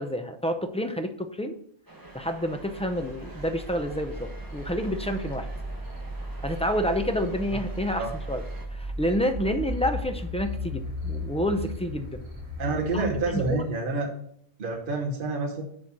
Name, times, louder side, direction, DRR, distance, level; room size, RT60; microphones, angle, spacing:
voice 1, 0.0-1.5 2.1-5.5 6.4-8.4 8.7-12.2 12.9-13.6, equal, 10° left, 7 dB, 0.4 m, -29 dB
sound 1, 1.9-8.7, right 2 dB, 20° right, 1.1 m, -48 dB
sound 2, 2.2-13.5, left 1 dB, 70° right, 2.0 m, -36 dB
voice 2, 12.6-14.1 14.6-15.6, right 3 dB, 50° right, 1 dB, 1.2 m, -28 dB
7.6 x 4.3 x 6.1 m, 0.69 s
omnidirectional pair, 1.1 m